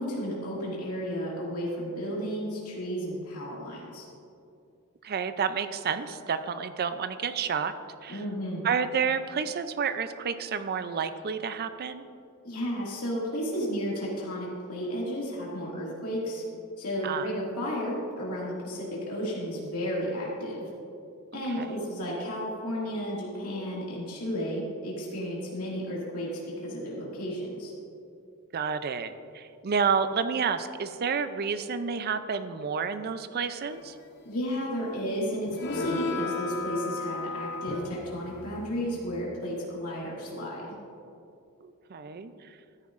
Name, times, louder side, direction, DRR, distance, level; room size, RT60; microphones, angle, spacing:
voice 1, 0.0-4.1 8.1-8.6 12.4-16.4 16.8-20.7 21.3-27.7 34.3-40.7, equal, 90° left, -4 dB, 2.2 m, -33 dB
voice 2, 5.0-7.7 8.0-8.2 8.6-12.1 17.0-17.3 21.3-21.7 28.5-33.9 41.6-42.3, right 6 dB, 45° right, 11 dB, 0.4 m, -30 dB
sound 1, 35.5-39.2, left 2 dB, 50° left, 0.7 m, -34 dB
13.5 x 9.6 x 2.5 m, 2.6 s
head